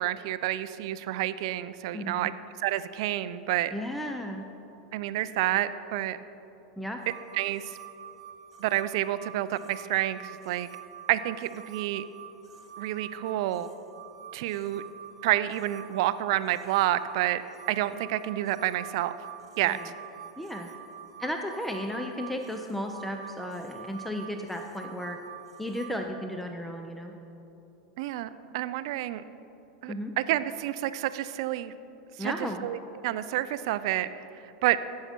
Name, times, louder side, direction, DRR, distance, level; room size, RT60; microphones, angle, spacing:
voice 1, 0.0-2.3 2.6-3.7 4.9-6.2 7.3-7.8 8.6-10.7 11.1-12.0 12.8-13.7 14.3-14.8 15.2-17.4 17.7-19.1 19.6-19.9 28.0-29.2 29.8-31.7 32.2-34.2 34.6-34.8, right 14 dB, 65° right, 14 dB, 0.4 m, -29 dB
voice 2, 1.9-2.3 3.7-4.4 6.8-7.0 19.7-19.9 20.4-20.7 21.2-25.2 25.6-27.1 29.9-30.1 32.2-32.7, equal, 5° left, 3 dB, 0.6 m, -34 dB
sound 1, 7.0-26.0, right 9 dB, 85° right, 1.1 m, -47 dB
14.5 x 5.7 x 4.4 m, 3.0 s
hypercardioid pair, 100°, 3 cm